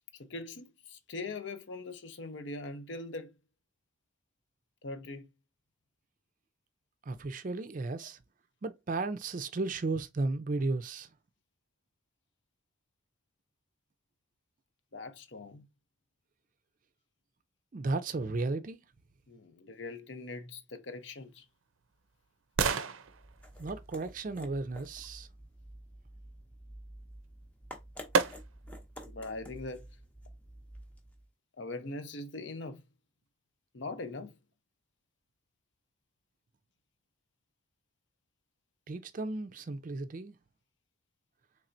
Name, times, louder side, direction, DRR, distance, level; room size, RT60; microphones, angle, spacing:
voice 1, 0.1-3.3 4.8-5.3 14.9-15.7 19.3-21.4 29.1-29.9 31.6-32.8 33.7-34.3, left 3 dB, 65° left, 0.6 m, -41 dB
voice 2, 7.1-8.2 8.6-11.1 17.7-18.8 23.6-25.3 38.9-40.4, right 3 dB, 40° right, 0.4 m, -34 dB
sound 1, 21.0-25.1 27.2-27.3 28.1-28.8 29.3-29.4, right 5 dB, 90° right, 0.5 m, -35 dB
sound 2, 23.1-31.3, equal, 5° left, 0.6 m, -50 dB
4.2 x 3.3 x 2.5 m
head